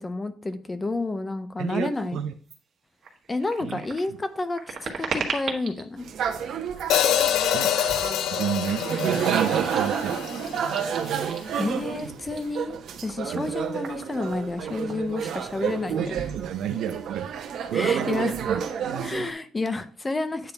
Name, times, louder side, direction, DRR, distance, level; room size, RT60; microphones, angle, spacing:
voice 1, 0.0-2.2 3.3-6.1 11.6-16.2 17.7-18.4 19.0-20.5, left 2 dB, 15° left, 11 dB, 0.5 m, -30 dB
voice 2, 1.6-2.3 3.6-3.8 4.1-4.2 7.5-7.8 8.3-10.2 13.3-13.5 15.6-18.6, right 9 dB, 75° right, 6 dB, 0.6 m, -31 dB
sound 1, 2.4-2.6 3.0-5.9 6.7-7.1 7.7-8.0 8.3-11.6 11.9-15.5 15.8-16.0 16.3-17.0, right 5 dB, 40° right, 1.6 m, -39 dB
sound 2, 6.0-19.3, right 7 dB, 60° right, 1.1 m, -30 dB
Hi-hat, 6.9-11.1, left 11 dB, 80° left, 0.5 m, -26 dB
9.0 x 3.5 x 5.6 m, 0.42 s
cardioid pair, 175°, 0 cm